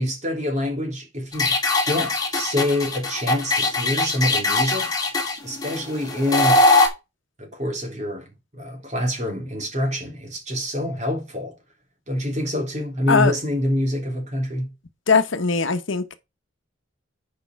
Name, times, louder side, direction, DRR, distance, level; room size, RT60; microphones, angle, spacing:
voice 1, 0.0-1.6 1.8-6.6 7.4-11.5 12.1-14.7, left 1 dB, 35° right, 3.4 m, -26 dB
sound 1, 1.3-6.9, left 2 dB, 20° left, 2.0 m, -21 dB
voice 2, 15.1-16.2, left 4 dB, 70° left, 1.1 m, -20 dB
8.5 x 5.3 x 4.6 m
head